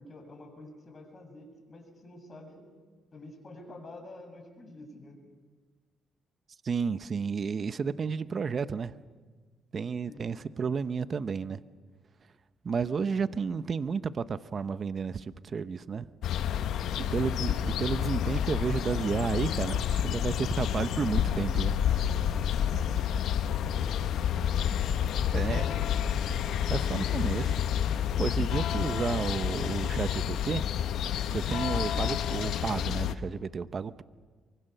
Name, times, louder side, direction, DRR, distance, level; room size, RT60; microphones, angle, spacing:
voice 1, 0.0-2.6 3.1-5.2 10.1-10.3 17.1-17.3 22.4-23.0 23.3-24.8 25.3-26.6 31.9-32.1, left 2 dB, 35° left, 3 dB, 7.2 m, -48 dB
voice 2, 6.6-8.9 9.7-11.6 12.6-16.1 17.0-22.3 25.3-25.7 26.7-30.6 31.3-34.0, right 5 dB, 45° right, 13 dB, 0.8 m, -32 dB
sound 1, 16.2-33.1, left 9 dB, 75° left, 0.9 m, -29 dB
25.0 x 24.0 x 6.8 m, 1.4 s
cardioid pair, 90°, 0 cm